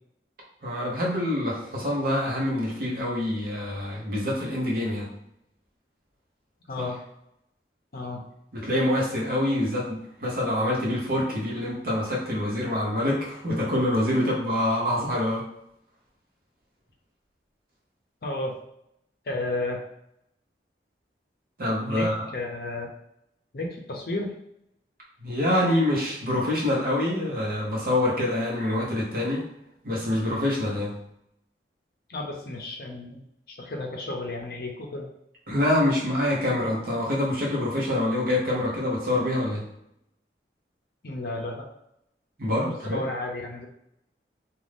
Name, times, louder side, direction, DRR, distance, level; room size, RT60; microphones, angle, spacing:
voice 1, 0.6-5.1 6.8-6.9 8.5-15.4 21.6-22.2 25.2-29.4 29.8-30.9 35.5-39.6 42.4-43.0, left 1 dB, 55° right, -4 dB, 0.9 m, -26 dB
voice 2, 6.7-7.0 7.9-8.2 18.2-18.6 19.2-19.8 21.9-22.9 23.5-24.3 32.1-33.2 33.5-35.1 41.0-41.7 42.6-43.7, left 2 dB, 55° left, 1 dB, 0.6 m, -33 dB
2.6 x 2.3 x 3.3 m, 0.78 s
head